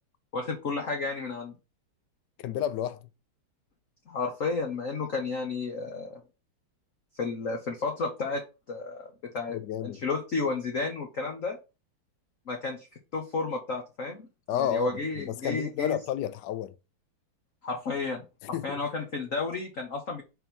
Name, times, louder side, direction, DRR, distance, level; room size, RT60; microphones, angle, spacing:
voice 1, 0.3-1.6 4.1-6.2 7.1-8.4 8.7-11.6 12.5-12.9 13.1-14.3 14.5-16.0 17.6-18.2 18.6-20.2, left 3 dB, 45° left, 1.1 m, -32 dB
voice 2, 2.4-3.0 9.5-10.0 14.5-14.9 15.2-16.7 18.5-18.8, left 10 dB, 75° left, 1.0 m, -31 dB
4.5 x 4.3 x 5.3 m
omnidirectional pair, 2.4 m